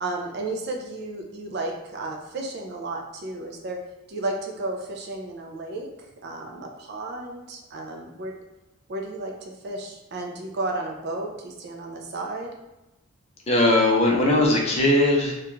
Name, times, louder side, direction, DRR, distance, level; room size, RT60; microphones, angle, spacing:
voice 1, 0.0-3.8 4.1-8.4 8.9-12.5, right 2 dB, 50° right, 2 dB, 0.3 m, -33 dB
voice 2, 13.5-15.3, left 1 dB, 30° left, -1 dB, 0.4 m, -19 dB
2.4 x 2.2 x 3.0 m, 0.99 s
head